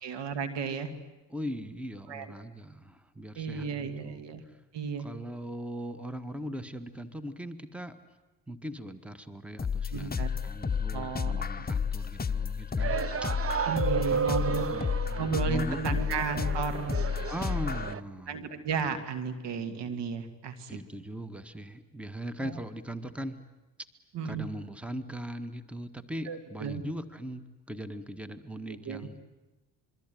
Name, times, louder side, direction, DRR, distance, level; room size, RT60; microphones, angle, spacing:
voice 1, 0.0-0.9 2.1-2.3 3.3-4.4 4.7-5.1 9.9-10.3 10.9-11.7 12.9-13.1 13.7-14.7 15.2-17.0 18.3-20.8 22.4-22.5 24.1-24.5 26.3-26.8 28.7-29.1, right 5 dB, 65° right, 9 dB, 2.6 m, -34 dB
voice 2, 1.3-4.2 5.0-8.0 8.5-13.0 14.1-14.3 14.7-16.0 17.3-18.4 20.7-23.5 24.2-29.2, right 1 dB, 5° right, 11 dB, 1.8 m, -40 dB
sound 1, 9.6-17.9, left 6 dB, 20° left, 1.1 m, -31 dB
sound 2, 12.8-18.0, right 6 dB, 30° right, 0.9 m, -33 dB
26.5 x 23.0 x 9.4 m, 1.1 s
hypercardioid pair, 55°, 45 cm